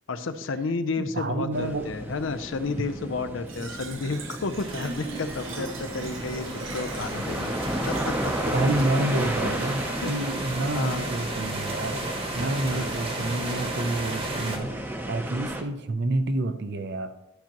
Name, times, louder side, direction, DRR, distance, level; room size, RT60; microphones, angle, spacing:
voice 1, 0.1-6.5 6.7-7.5 7.9-8.3 9.2-9.5 10.0-10.1 10.7-11.1 12.7-12.9, left 4 dB, 80° left, 10 dB, 0.6 m, -31 dB
voice 2, 1.0-1.9 8.5-12.0 12.3-14.7 15.1-17.1, right 2 dB, 60° right, 10 dB, 0.6 m, -28 dB
sound 1, 1.5-15.6, right 1 dB, 10° right, 0.7 m, -34 dB
Fill (with liquid), 3.5-8.5, right 4 dB, 80° right, 0.9 m, -40 dB
sound 2, 4.5-14.6, right 2 dB, 30° right, 1.2 m, -34 dB
12.0 x 5.8 x 3.0 m, 0.92 s
head